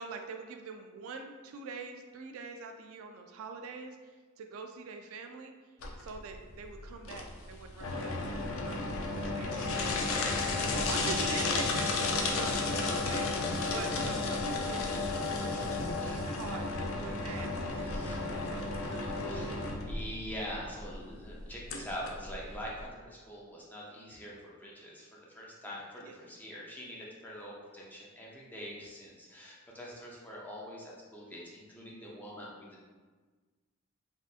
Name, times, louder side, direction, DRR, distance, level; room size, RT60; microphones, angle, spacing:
voice 1, 0.0-4.0 4.4-5.5 6.0-8.2 8.5-9.9 10.7-11.9 12.1-19.1 26.0-26.1, right 4 dB, 75° right, 6 dB, 0.3 m, -44 dB
sound 1, 5.8-22.8, left 3 dB, 75° left, 0.4 m, -33 dB
voice 2, 10.6-11.1 13.6-13.8 16.0-16.2 17.8-18.2 19.1-32.8, equal, 10° left, -5 dB, 0.5 m, -44 dB
3.4 x 2.7 x 2.4 m, 1.4 s
head